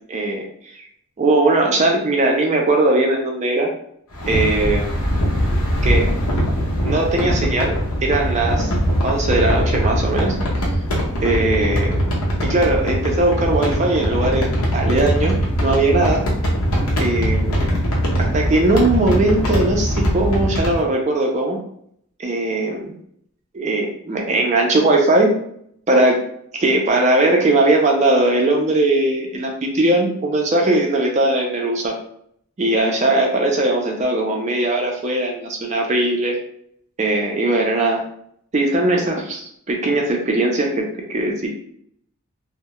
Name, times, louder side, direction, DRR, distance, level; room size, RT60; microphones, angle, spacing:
voice 1, 0.1-0.8 1.2-3.7 4.3-4.9 5.8-6.1 6.8-8.7 9.0-10.4 11.2-12.0 12.4-15.3 15.6-16.2 17.0-17.7 18.2-21.6 22.2-22.9 23.5-25.3 25.9-26.2 26.6-32.0 32.6-36.4 37.0-38.0 38.5-40.8 41.1-41.5, right 2 dB, 30° right, 1 dB, 0.4 m, -19 dB
sound 1, 4.1-20.8, equal, 75° left, 0.7 m, -21 dB
2.2 x 2.0 x 2.9 m, 0.68 s
head